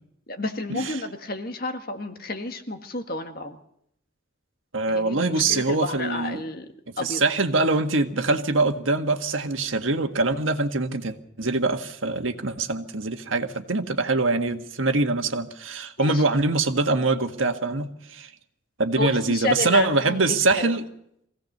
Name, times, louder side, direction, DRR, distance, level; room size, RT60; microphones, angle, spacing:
voice 1, 0.3-3.6 4.9-6.7 7.0-7.2 16.0-16.2 19.0-20.8, left 3 dB, 50° left, 5 dB, 1.7 m, -31 dB
voice 2, 4.7-6.4 7.0-18.3 18.8-20.9, right 3 dB, 90° right, 6 dB, 1.7 m, -24 dB
24.0 x 16.5 x 6.7 m, 0.73 s
head